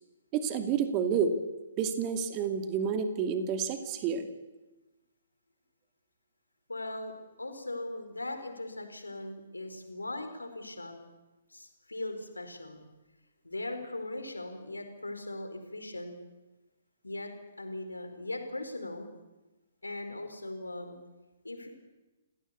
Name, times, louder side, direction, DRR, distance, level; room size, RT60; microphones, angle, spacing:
voice 1, 0.3-1.3 1.8-4.3, right 7 dB, 25° right, 7 dB, 2.5 m, -29 dB
voice 2, 6.7-10.9 11.5-12.8 13.4-16.1 17.0-17.3 17.6-19.1 19.8-21.0 21.4-21.7, left 2 dB, 80° left, 6 dB, 4.7 m, -39 dB
28.0 x 18.0 x 8.4 m, 1.1 s
figure-of-eight pair, 125°, 0 cm